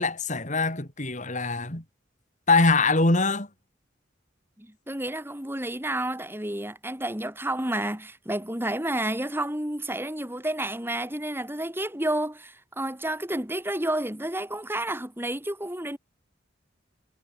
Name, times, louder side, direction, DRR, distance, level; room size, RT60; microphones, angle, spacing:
voice 1, 0.0-1.8 2.5-3.5, left 3 dB, 40° left, 3.7 m, -23 dB
voice 2, 4.6-16.0, right 1 dB, 10° right, 5.1 m, -30 dB
head